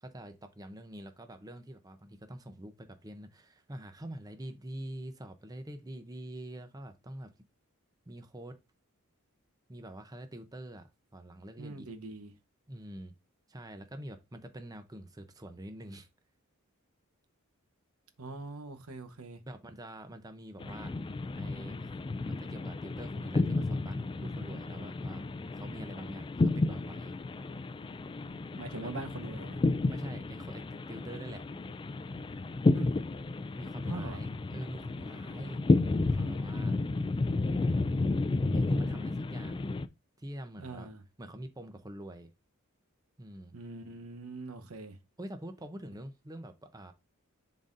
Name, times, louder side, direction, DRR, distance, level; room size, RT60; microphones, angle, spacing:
voice 1, 0.0-7.3 8.1-8.6 9.7-10.9 11.1-11.9 12.7-13.1 13.5-16.1 19.5-20.9 21.3-21.9 22.2-25.2 25.5-27.2 28.6-28.9 29.9-31.4 33.6-35.6 36.0-36.8 38.5-39.7 40.2-40.9 41.2-42.3 43.2-43.5 45.2-46.9, right 1 dB, 15° right, 0.6 m, -45 dB
voice 2, 11.6-12.3 18.2-19.4 28.5-29.6 32.7-32.9 33.8-34.2 40.6-41.0 43.5-45.0, right 2 dB, 75° right, 0.9 m, -42 dB
sound 1, 20.6-39.9, left 2 dB, 25° left, 0.3 m, -32 dB
11.0 x 4.0 x 2.5 m
head